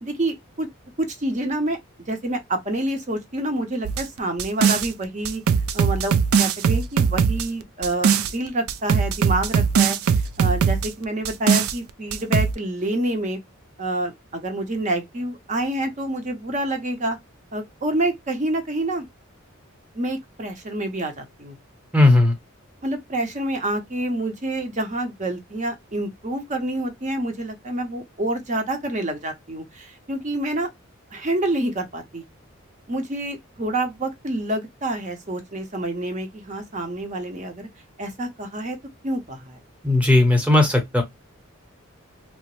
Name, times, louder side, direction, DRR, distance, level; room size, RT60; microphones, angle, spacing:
voice 1, 0.0-0.7 1.0-1.8 2.1-5.4 5.7-13.4 13.8-17.2 17.5-19.1 19.9-21.5 22.8-30.7 31.1-32.2 32.9-37.7 38.0-38.8 39.0-39.6, right 1 dB, 35° right, 0.7 m, -27 dB
sound 1, 3.8-4.9 5.2-8.3 8.7-10.9 11.2-11.7 12.1-12.5, right 6 dB, 75° right, 0.3 m, -20 dB
voice 2, 21.9-22.4 39.8-41.0, left 2 dB, 5° right, 0.8 m, -16 dB
2.8 x 2.0 x 2.9 m
head